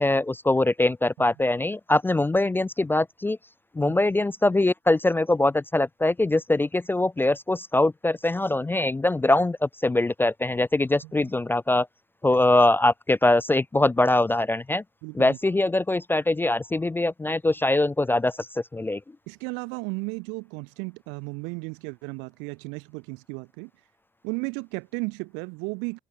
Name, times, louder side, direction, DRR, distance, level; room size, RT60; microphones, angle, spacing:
voice 1, 0.0-3.4 3.8-11.9 12.2-14.8 15.1-19.0, left 2 dB, 10° left, 0.3 m, -23 dB
voice 2, 15.0-15.4 19.3-23.7 24.2-26.0, right 32 dB, 65° right, 0.6 m, -34 dB
figure-of-eight pair, 50°, 20 cm